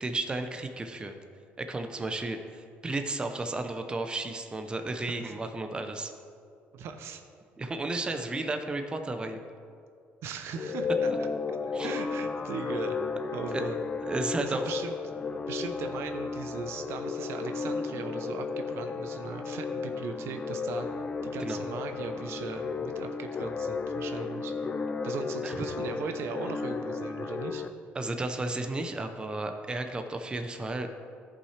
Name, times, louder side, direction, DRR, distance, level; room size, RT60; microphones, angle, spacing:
voice 1, 0.0-1.1 1.6-6.1 7.6-9.4 11.7-11.9 13.5-13.6 14.0-14.6 21.4-21.6 25.4-25.6 27.9-30.9, right 2 dB, 20° right, 6 dB, 0.7 m, -33 dB
voice 2, 6.7-7.2 10.2-11.1 11.8-13.0 13.3-13.8 14.4-15.0 15.5-20.9 21.2-24.7 25.0-27.6, right 6 dB, 70° right, 7 dB, 0.7 m, -38 dB
sound 1, 10.5-27.7, left 4 dB, 30° left, 0.4 m, -33 dB
14.0 x 5.6 x 3.3 m, 2.3 s
cardioid pair, 100°, 5 cm